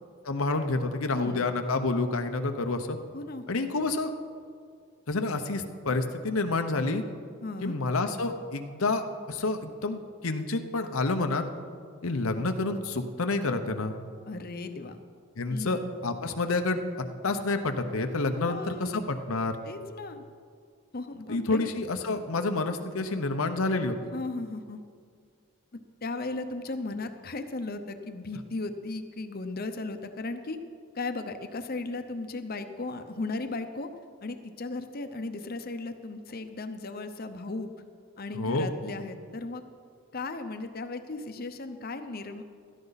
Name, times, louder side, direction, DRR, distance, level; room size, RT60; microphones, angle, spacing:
voice 1, 0.2-3.0 3.5-4.1 5.1-7.0 7.6-11.5 12.0-14.0 15.4-16.8 17.2-19.5 21.3-23.9 38.3-38.7, left 3 dB, 85° left, 7 dB, 0.9 m, -29 dB
voice 2, 3.1-3.4 7.4-7.7 14.3-15.0 15.5-15.9 18.3-19.0 19.6-20.2 20.9-21.7 24.1-24.8 26.0-30.6 30.9-33.9 34.2-37.7 38.2-39.6 40.1-42.4, left 3 dB, 45° left, 8 dB, 0.8 m, -36 dB
16.0 x 12.5 x 4.1 m, 2.2 s
head